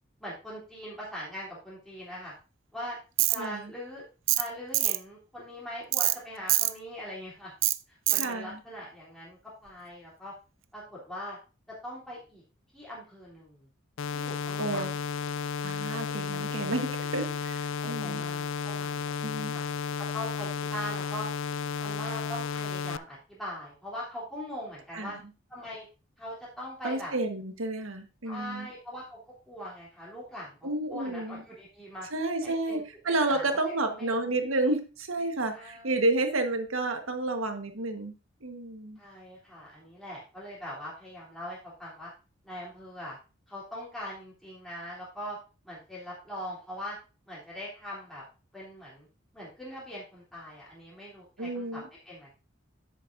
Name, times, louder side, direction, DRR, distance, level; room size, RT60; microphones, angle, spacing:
voice 1, 0.2-2.3 2.7-3.0 3.3-4.0 4.3-7.5 7.9-10.3 10.7-11.4 11.7-12.4 12.7-13.7 14.1-14.9 17.8-19.6 20.0-21.3 21.8-25.1 25.5-25.8 26.2-27.1 28.2-29.2 29.5-32.1 32.4-32.8 33.3-34.3 35.5-36.0 39.0-42.1 42.4-43.2 43.5-45.4 45.6-47.0 47.3-48.2 48.5-49.1 49.3-52.3, equal, ahead, -8 dB, 3.1 m, -41 dB
Tools, 3.2-3.4 4.3-4.5 4.7-5.0 5.9-6.2 6.5-6.7 7.6-7.8 8.1-8.3, right 16 dB, 65° right, 0.5 m, -24 dB
voice 2, 3.4-3.7 8.1-8.6 14.6-14.9 15.6-18.3 19.2-19.5 24.9-25.2 26.8-28.7 30.6-31.4 32.1-38.1 38.4-39.0 51.4-51.8, right 2 dB, 85° right, 6 dB, 1.4 m, -31 dB
sound 1, 14.0-23.0, left 6 dB, 65° left, 0.3 m, -33 dB
10.5 x 8.2 x 2.6 m, 0.32 s
head